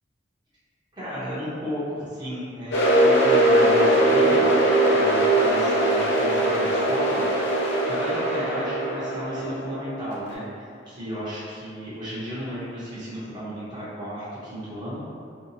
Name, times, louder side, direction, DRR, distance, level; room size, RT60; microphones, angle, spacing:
voice 1, 1.0-4.5 4.9-7.3 7.6-15.1, equal, 25° right, -12 dB, 0.8 m, -33 dB
sound 1, 2.7-10.3, right 1 dB, 65° left, 0.6 m, -21 dB
2.7 x 2.1 x 2.6 m, 2.3 s
head